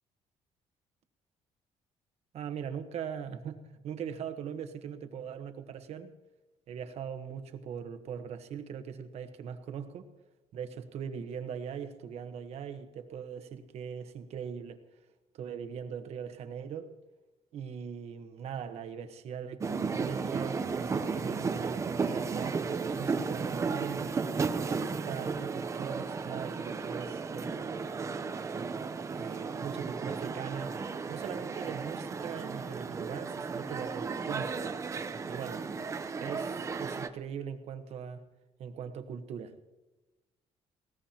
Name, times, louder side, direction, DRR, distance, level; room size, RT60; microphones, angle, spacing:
voice 1, 2.3-6.1 6.7-10.1 10.5-14.8 15.3-16.9 17.5-24.2 25.0-27.8 29.2-30.7 31.1-34.5 35.3-35.7 36.2-38.2 38.6-39.5, right 7 dB, 60° right, 8 dB, 1.2 m, -40 dB
sound 1, 19.6-37.1, right 5 dB, 25° right, 0.7 m, -34 dB
19.5 x 18.0 x 2.9 m, 1.1 s
cardioid pair, 145°, 12 cm